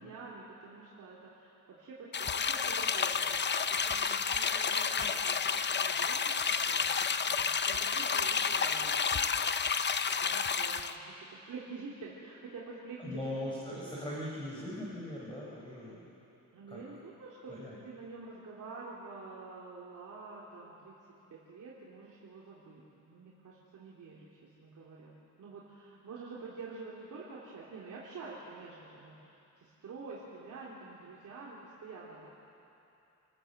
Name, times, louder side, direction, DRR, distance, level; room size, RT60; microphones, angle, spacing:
voice 1, 0.0-9.4 10.2-13.2 16.5-20.9 21.3-32.3, right 4 dB, 70° right, -6 dB, 3.2 m, -48 dB
sound 1, 2.1-10.9, left 6 dB, 35° left, 0.7 m, -30 dB
voice 2, 13.0-16.1 16.7-16.8 17.5-17.8, left 1 dB, 15° left, -6 dB, 4.4 m, -40 dB
28.0 x 14.5 x 7.9 m, 2.8 s
cardioid pair, 120°, 32 cm